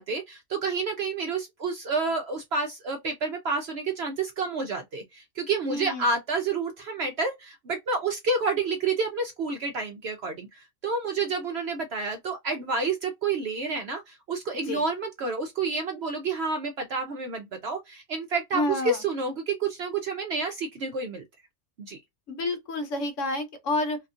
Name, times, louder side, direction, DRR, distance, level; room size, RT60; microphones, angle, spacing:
voice 1, 0.0-21.2 21.8-22.0, right 4 dB, 60° right, 0.7 m, -29 dB
voice 2, 5.7-6.1 14.7-14.8 18.5-19.0 22.3-24.0, left 2 dB, 60° left, 1.1 m, -29 dB
2.8 x 2.5 x 2.3 m
omnidirectional pair, 1.5 m